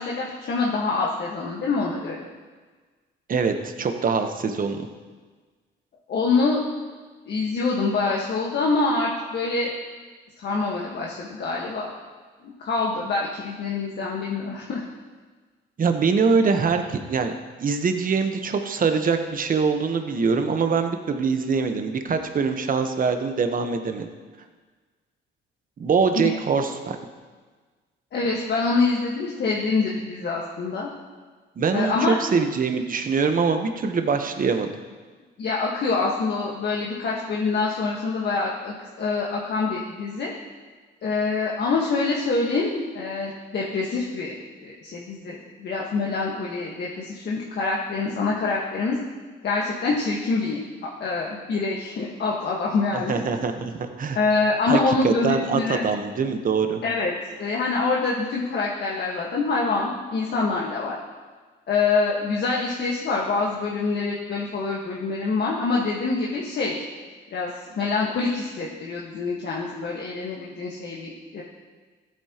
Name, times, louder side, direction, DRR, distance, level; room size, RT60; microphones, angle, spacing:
voice 1, 0.0-2.2 6.1-6.6 7.3-9.7 10.4-11.9 12.4-14.8 26.2-26.3 28.1-30.9 31.7-32.1 35.4-40.3 41.0-44.3 44.6-49.0 49.4-50.6 51.0-53.2 54.1-55.8 56.8-57.1 57.4-61.0 61.7-66.8 67.3-67.5 67.7-71.4, left 3 dB, 60° left, -3 dB, 1.5 m, -25 dB
voice 2, 3.3-4.9 15.8-17.3 17.6-24.1 25.8-27.0 31.6-34.7 52.9-54.2 54.7-54.8 55.0-56.8, right 5 dB, 45° right, 6 dB, 1.1 m, -23 dB
14.5 x 8.7 x 3.0 m, 1.4 s
cardioid pair, 90°, 20 cm